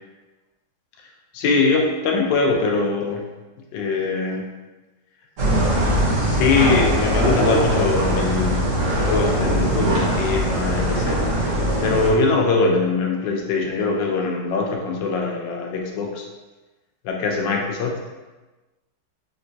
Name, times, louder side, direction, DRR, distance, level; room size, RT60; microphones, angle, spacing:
voice 1, 1.3-3.2 3.7-4.5 6.1-11.4 11.8-16.3 17.0-18.0, left 4 dB, 85° left, 1 dB, 1.2 m, -22 dB
sound 1, 5.4-12.1, right 1 dB, 60° right, 0.9 m, -21 dB
3.9 x 2.2 x 2.6 m, 1.2 s
omnidirectional pair, 1.9 m